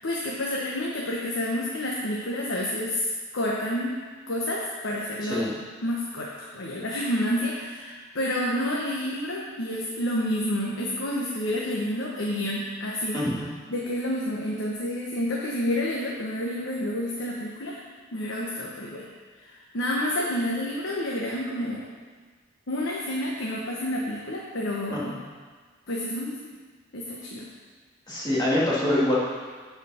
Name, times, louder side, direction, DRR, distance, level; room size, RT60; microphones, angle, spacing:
voice 1, 0.0-3.9 4.3-5.4 5.8-13.2 13.7-17.8 18.1-19.1 19.4-21.9 22.7-25.1 25.9-26.4 26.9-27.5, left 1 dB, 75° left, -3 dB, 1.1 m, -29 dB
voice 2, 5.2-5.5 13.1-13.5 24.9-25.2 28.1-29.3, left 1 dB, 20° left, -8 dB, 2.3 m, -25 dB
10.0 x 4.9 x 5.6 m, 1.5 s
head